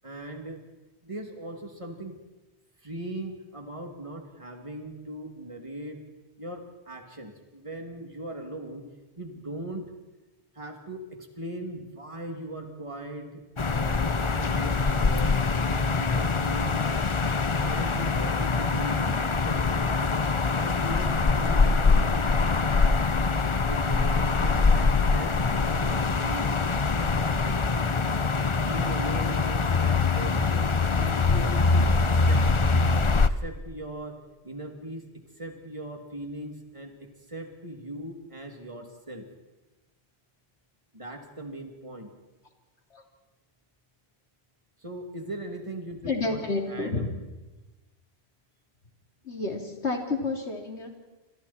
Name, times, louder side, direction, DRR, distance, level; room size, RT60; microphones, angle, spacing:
voice 1, 0.0-0.6 1.0-2.2 2.8-6.0 6.4-8.8 9.2-9.9 10.5-16.8 17.5-19.7 20.5-22.1 23.7-26.5 26.9-27.8 28.6-30.6 30.9-32.4 33.1-34.2 34.4-35.1 35.4-39.3 40.9-42.1 44.8-47.0, right 1 dB, 30° right, 3 dB, 2.9 m, -39 dB
sound 1, 13.6-33.3, left 4 dB, 30° left, 0.8 m, -24 dB
voice 2, 46.0-47.1 49.2-50.9, left 3 dB, 85° left, 3 dB, 3.6 m, -30 dB
28.0 x 26.0 x 4.4 m, 1.1 s
omnidirectional pair, 1.1 m